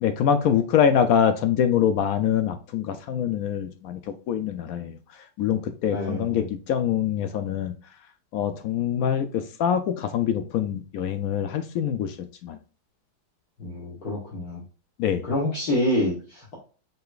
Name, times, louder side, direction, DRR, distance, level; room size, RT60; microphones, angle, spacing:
voice 1, 0.0-4.0 4.3-4.9 5.4-7.7 8.3-12.1 12.4-12.6 15.0-15.2, left 8 dB, 75° left, 9 dB, 0.8 m, -24 dB
voice 2, 5.9-6.5 13.6-14.6 15.2-16.5, left 1 dB, 55° left, -5 dB, 1.8 m, -27 dB
5.5 x 3.9 x 2.4 m, 0.37 s
omnidirectional pair, 2.0 m